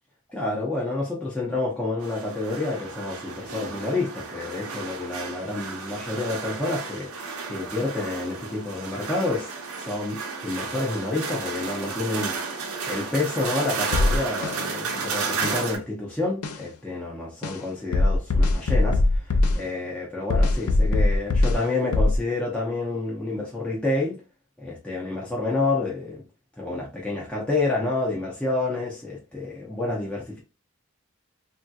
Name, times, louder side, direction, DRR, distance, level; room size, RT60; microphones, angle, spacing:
voice 1, 0.3-9.5 9.8-24.2 24.6-26.2 26.6-30.4, left 2 dB, 5° left, 0.6 m, -29 dB
sound 1, 2.0-15.8, right 4 dB, 90° right, 0.8 m, -33 dB
sound 2, 13.9-14.6 15.4-15.6 16.4-16.6 17.4-17.6 17.9-19.6 20.3-21.6 21.9-22.2, left 2 dB, 85° left, 0.5 m, -21 dB
3.4 x 2.7 x 2.3 m
head